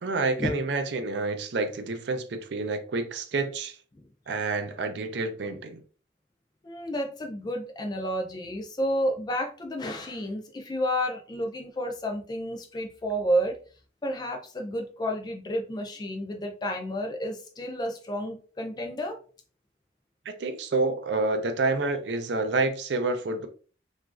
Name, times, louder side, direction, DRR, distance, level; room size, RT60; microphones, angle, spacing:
voice 1, 0.0-3.8 4.3-5.8 20.3-23.5, right 3 dB, 65° right, 0.4 m, -28 dB
voice 2, 6.6-13.6 14.0-19.2, equal, 20° left, 0.3 m, -31 dB
3.0 x 2.4 x 2.4 m
head